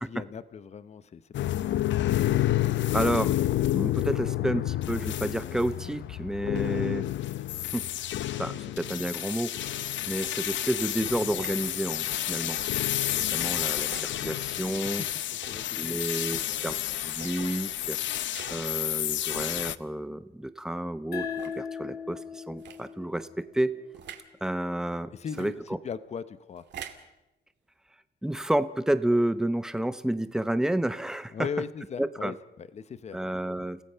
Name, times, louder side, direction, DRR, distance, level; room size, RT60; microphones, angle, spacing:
voice 1, 0.0-1.7 12.4-12.7 15.0-15.1 15.4-16.0 25.1-25.6 25.8-26.6 31.3-33.3 33.6-33.7, left 6 dB, 35° left, 14 dB, 0.8 m, -38 dB
sound 1, 1.3-19.8, left 13 dB, 85° left, 0.7 m, -30 dB
voice 2, 2.9-3.4 3.7-7.1 7.7-7.9 8.4-12.6 12.9-15.0 15.8-16.8 17.1-18.0 18.5-23.9 24.4-25.1 25.4-25.5 28.2-31.5 32.0-32.3 33.1-33.8, right 1 dB, 5° right, 12 dB, 0.7 m, -30 dB
sound 2, 10.1-10.4 11.2-11.6 12.4-12.7 13.8-14.1 15.3-15.7 17.0-17.4 18.3-18.6 19.3-19.6 20.3-20.4 21.2-21.6 22.6-22.8 23.9-24.3 25.3-25.5 26.6-27.1, right 8 dB, 70° right, 2.1 m, -45 dB
sound 3, 21.1-24.3, left 7 dB, 60° left, 3.9 m, -39 dB
29.5 x 17.0 x 5.6 m, 0.93 s
wide cardioid pair, 175°, 19 cm